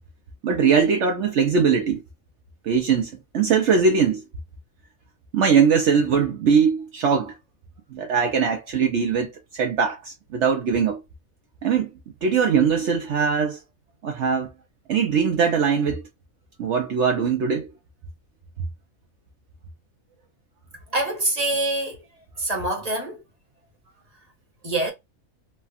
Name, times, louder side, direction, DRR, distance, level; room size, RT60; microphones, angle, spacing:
voice 1, 0.4-2.0 2.6-4.2 5.3-7.3 7.9-11.0 11.6-11.9 12.2-13.6 14.0-14.5 14.9-16.0 16.6-17.7, right 6 dB, 65° right, 0.9 m, -21 dB
voice 2, 20.9-22.0 22.4-23.2 24.6-24.9, right 2 dB, 30° right, 1.0 m, -25 dB
3.3 x 2.2 x 2.4 m
omnidirectional pair, 1.5 m